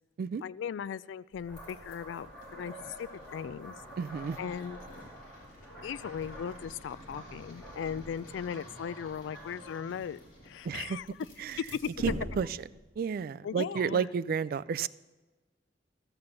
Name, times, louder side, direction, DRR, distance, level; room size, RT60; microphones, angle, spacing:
voice 1, 0.4-3.8 4.4-4.8 5.8-11.1 11.6-11.9 13.4-14.1, left 7 dB, 90° left, 19 dB, 0.3 m, -38 dB
sound 1, 1.3-12.9, equal, 50° left, 2.8 m, -47 dB
sound 2, 1.5-9.8, right 1 dB, 5° left, 2.8 m, -49 dB
voice 2, 4.0-4.4 10.6-11.0 11.4-11.6 12.0-12.5 13.0-14.9, right 6 dB, 55° right, 17 dB, 0.3 m, -31 dB
13.5 x 6.9 x 6.8 m, 1.2 s
head